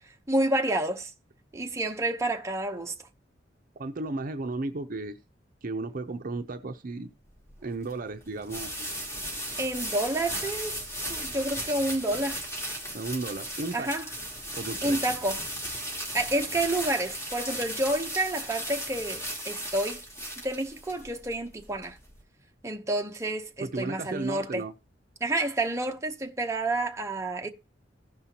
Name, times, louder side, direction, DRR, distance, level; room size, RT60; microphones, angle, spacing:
voice 1, 0.3-1.1 1.5-2.9 9.6-10.8 11.1-12.4 13.7-14.1 14.8-15.4 16.1-20.0 20.4-22.0 22.6-24.6 25.2-27.5, right 1 dB, 15° right, 0.8 m, -29 dB
voice 2, 3.8-5.2 5.6-7.1 7.6-8.9 12.9-13.9 14.5-15.0 23.6-24.7, right 2 dB, 50° right, 0.6 m, -34 dB
sound 1, 7.3-22.2, equal, 15° left, 2.9 m, -36 dB
15.5 x 5.5 x 2.9 m
head